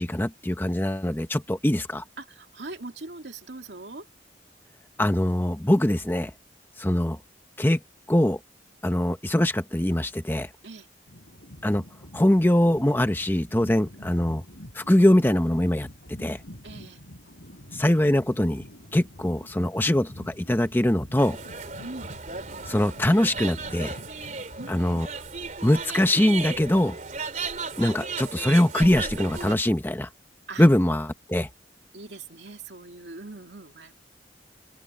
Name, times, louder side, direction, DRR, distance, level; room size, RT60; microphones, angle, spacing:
voice 1, 0.0-2.0 5.0-6.3 6.8-7.2 7.6-7.8 8.1-8.4 8.8-10.5 11.6-11.8 12.1-14.4 14.7-15.9 16.2-16.4 17.7-18.6 18.9-21.4 22.7-24.0 24.7-25.1 25.6-27.0 27.8-30.1 30.6-31.5, left 1 dB, 10° left, 0.8 m, -22 dB
voice 2, 2.2-4.1 10.6-10.9 16.6-17.0 21.8-22.1 24.6-25.0 30.5-30.7 31.9-33.9, right 3 dB, 75° right, 2.6 m, -41 dB
sound 1, 11.1-25.3, equal, 85° left, 3.9 m, -46 dB
sound 2, 21.2-29.5, right 5 dB, 45° right, 3.4 m, -35 dB
open air
head